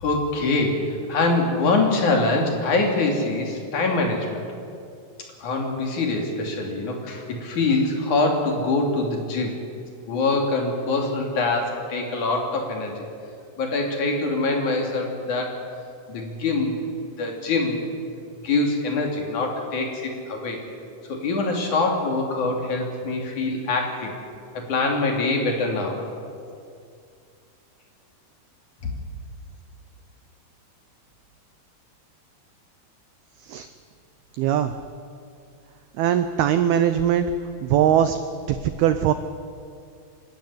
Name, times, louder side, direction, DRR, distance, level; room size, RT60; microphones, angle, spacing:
voice 1, 0.0-4.4 5.4-9.6 10.1-13.0 13.6-15.5 16.1-16.8 17.2-17.8 18.4-20.6 21.1-24.1 24.5-26.0, left 3 dB, 45° left, 1 dB, 3.8 m, -24 dB
voice 2, 34.4-34.7 36.0-37.3 37.6-38.2 38.5-39.1, right 10 dB, 90° right, 10 dB, 2.2 m, -20 dB
25.5 x 13.0 x 9.9 m, 2.4 s
omnidirectional pair, 5.4 m